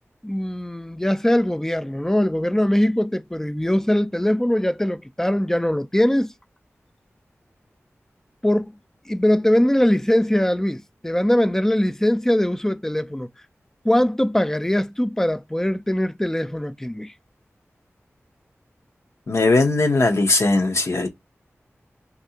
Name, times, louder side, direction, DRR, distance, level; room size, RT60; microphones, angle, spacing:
voice 1, 0.2-6.3 8.4-8.7 9.1-13.3 13.8-17.1, left 1 dB, 10° left, 0.4 m, -21 dB
voice 2, 19.3-21.1, left 2 dB, 70° left, 0.7 m, -19 dB
3.2 x 2.5 x 2.8 m
wide cardioid pair, 50°, 5 cm